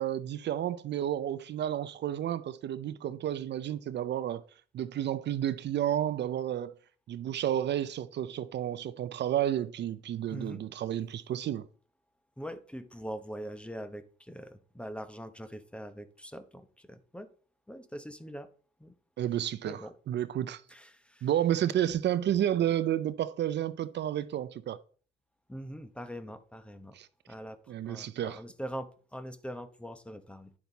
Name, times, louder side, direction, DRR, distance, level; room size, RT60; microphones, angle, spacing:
voice 1, 0.0-4.4 4.7-6.7 7.1-11.7 19.2-20.6 21.2-24.8 26.9-27.1 27.7-28.4, right 11 dB, 60° right, 0.5 m, -31 dB
voice 2, 10.3-10.6 12.4-17.3 17.7-18.5 18.8-18.9 19.6-19.9 20.7-21.3 25.5-27.0 27.3-30.5, equal, 5° left, 0.9 m, -43 dB
10.0 x 5.8 x 4.0 m
cardioid pair, 90°, 20 cm